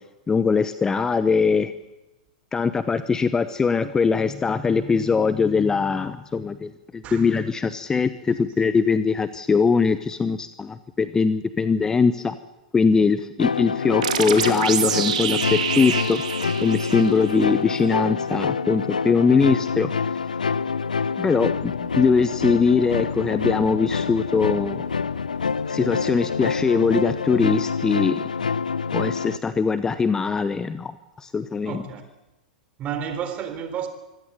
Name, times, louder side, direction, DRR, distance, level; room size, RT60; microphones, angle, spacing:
voice 1, 0.3-1.7 2.5-12.3 12.7-16.2 16.6-19.9 21.2-24.8 25.7-28.2 28.9-31.8, left 5 dB, 15° left, 0.9 m, -21 dB
sound 1, 13.4-29.4, left 5 dB, 75° left, 0.7 m, -26 dB
sound 2, 14.0-17.5, right 8 dB, 60° right, 2.5 m, -27 dB
voice 2, 31.6-32.0 32.8-33.9, right 8 dB, 30° right, 3.6 m, -31 dB
25.0 x 16.0 x 8.1 m
figure-of-eight pair, 100°, 4 cm